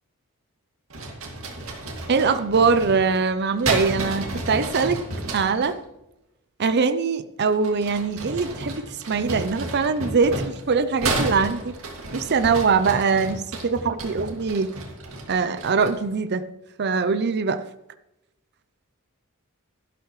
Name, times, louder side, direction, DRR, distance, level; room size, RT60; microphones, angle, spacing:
sound 1, 0.9-5.7 7.5-16.1, right 2 dB, 70° right, 2.3 m, -32 dB
voice 1, 2.1-5.0 5.3-5.8 6.6-11.8 12.1-14.7 15.3-16.5 16.8-17.6, right 5 dB, 50° right, 11 dB, 0.6 m, -22 dB
12.0 x 12.0 x 3.2 m, 0.90 s
head